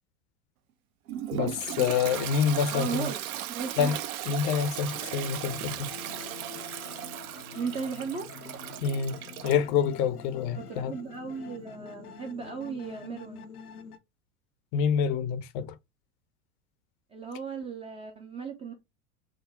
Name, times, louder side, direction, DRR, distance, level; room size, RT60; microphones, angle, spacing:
Toilet flush, 1.1-9.7, right 12 dB, 70° right, 0.5 m, -37 dB
voice 1, 1.3-3.1 3.8-4.0 4.3-5.9 8.8-9.2 9.4-10.9 14.7-15.8, left 7 dB, 40° left, 0.5 m, -27 dB
voice 2, 2.7-3.2 3.5-3.9 7.5-8.3 10.6-13.5 17.1-18.7, right 5 dB, 15° right, 0.3 m, -36 dB
sound 1, 4.9-14.0, left 7 dB, 85° left, 0.6 m, -46 dB
3.7 x 2.0 x 3.2 m
figure-of-eight pair, 85°, 44 cm